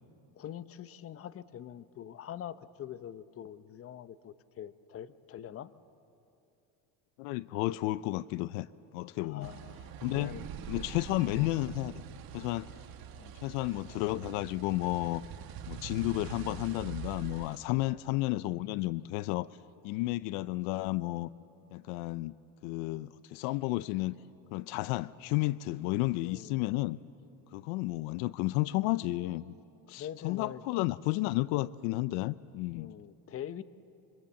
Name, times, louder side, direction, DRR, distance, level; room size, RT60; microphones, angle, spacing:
voice 1, 0.3-5.7 9.2-10.5 13.1-13.4 17.7-18.0 26.2-26.6 30.0-30.6 32.7-33.6, left 10 dB, 35° left, 15 dB, 0.8 m, -44 dB
voice 2, 7.2-8.7 8.9-9.5 10.0-10.3 10.7-11.9 12.3-12.7 13.4-15.2 15.7-19.5 19.8-21.3 21.7-22.4 22.6-24.2 24.5-27.0 27.5-29.5 29.9-32.9, left 19 dB, 75° left, 18 dB, 0.6 m, -32 dB
sound 1, 9.4-17.6, right 9 dB, 55° right, 1.7 m, -44 dB
25.0 x 24.5 x 7.5 m, 2.7 s
supercardioid pair, 105°, 42 cm